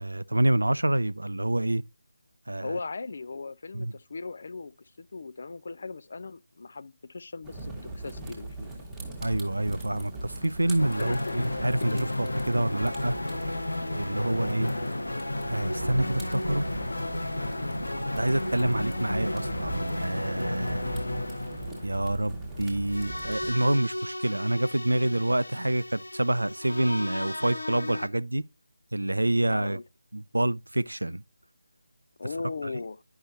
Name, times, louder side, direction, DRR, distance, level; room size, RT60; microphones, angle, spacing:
voice 1, 0.0-1.8 2.5-2.8 3.7-3.9 9.2-13.1 13.9-14.7 15.5-16.7 18.1-20.9 21.8-28.4 28.9-29.8 30.1-31.2, right 1 dB, 75° right, 0.4 m, -27 dB
voice 2, 2.6-8.9 11.0-11.5 11.8-12.1 14.2-14.4 29.4-29.8 32.2-33.0, left 3 dB, 45° left, 0.3 m, -38 dB
sound 1, 7.4-23.5, right 2 dB, 5° right, 1.2 m, -40 dB
sound 2, 10.8-28.1, left 1 dB, 70° left, 0.8 m, -33 dB
10.0 x 5.5 x 2.6 m
figure-of-eight pair, 155°, 0 cm